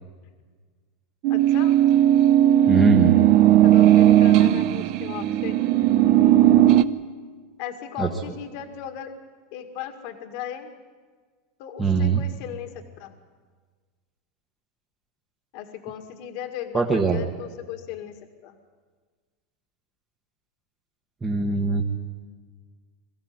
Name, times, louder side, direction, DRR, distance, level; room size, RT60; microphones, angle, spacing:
sound 1, 1.2-6.8, right 12 dB, 50° right, 0.7 m, -17 dB
voice 1, 1.3-1.8 3.6-5.6 7.6-9.2 9.5-10.7 11.6-13.2 15.5-18.6, left 10 dB, 55° left, 6 dB, 2.0 m, -36 dB
voice 2, 2.7-3.2 8.0-8.1 11.8-12.2 16.7-17.2 21.2-21.8, right 4 dB, 15° right, 0 dB, 1.4 m, -21 dB
23.0 x 15.0 x 9.5 m, 1.5 s
supercardioid pair, 150°, 0 cm